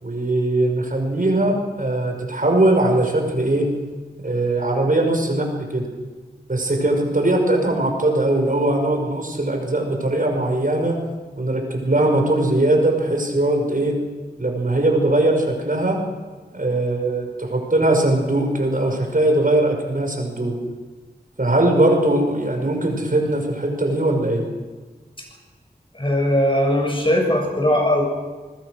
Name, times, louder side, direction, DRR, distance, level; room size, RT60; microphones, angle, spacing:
voice 1, 0.0-3.7 4.2-5.9 6.5-11.0 11.4-13.9 14.4-16.0 16.5-20.6 21.4-24.5, right 1 dB, 50° right, 2 dB, 5.7 m, -20 dB
voice 2, 25.9-28.0, left 1 dB, 30° left, 2 dB, 7.4 m, -19 dB
25.5 x 20.5 x 6.6 m, 1.4 s
wide cardioid pair, 45°, 18 cm